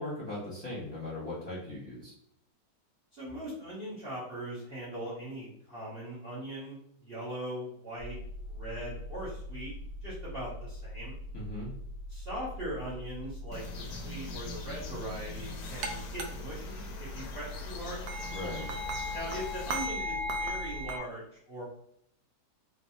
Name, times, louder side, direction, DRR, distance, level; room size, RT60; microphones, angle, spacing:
voice 1, 0.0-2.1 11.3-11.7 18.3-18.7, left 2 dB, 15° left, -8 dB, 1.1 m, -38 dB
voice 2, 3.1-8.2 8.5-9.7 10.0-11.2 12.1-18.0 19.1-21.6, right 1 dB, 40° right, -8 dB, 1.0 m, -40 dB
sound 1, 8.0-20.9, left 1 dB, 55° right, 1.5 m, -43 dB
sound 2, 13.5-19.9, left 4 dB, 70° left, 1.0 m, -44 dB
sound 3, 15.8-15.9 16.2-16.3 18.1-21.0, equal, 75° right, 1.2 m, -35 dB
3.2 x 2.9 x 2.7 m, 0.70 s
omnidirectional pair, 1.9 m